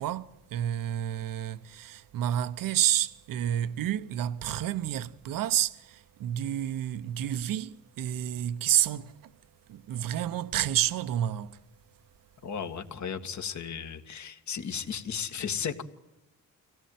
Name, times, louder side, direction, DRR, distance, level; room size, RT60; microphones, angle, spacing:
voice 1, 0.0-11.7, right 11 dB, 85° right, 1.0 m, -30 dB
voice 2, 12.4-15.8, left 7 dB, 60° left, 2.0 m, -35 dB
24.5 x 17.5 x 9.4 m
cardioid pair, 95°, 33 cm